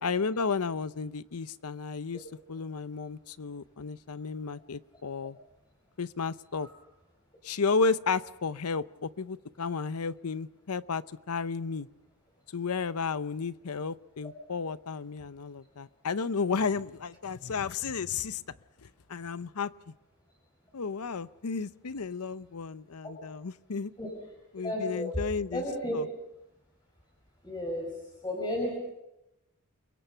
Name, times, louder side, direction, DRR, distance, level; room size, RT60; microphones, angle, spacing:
voice 1, 0.0-5.4 6.0-6.7 7.4-11.9 12.5-18.4 19.1-19.7 20.7-23.9 24.5-25.6 25.9-26.1, left 5 dB, 85° left, 15 dB, 0.7 m, -32 dB
voice 2, 24.6-25.2 25.5-26.0 27.4-27.9 28.2-28.8, left 1 dB, 20° left, -1 dB, 5.2 m, -32 dB
28.5 x 23.0 x 5.7 m, 0.92 s
head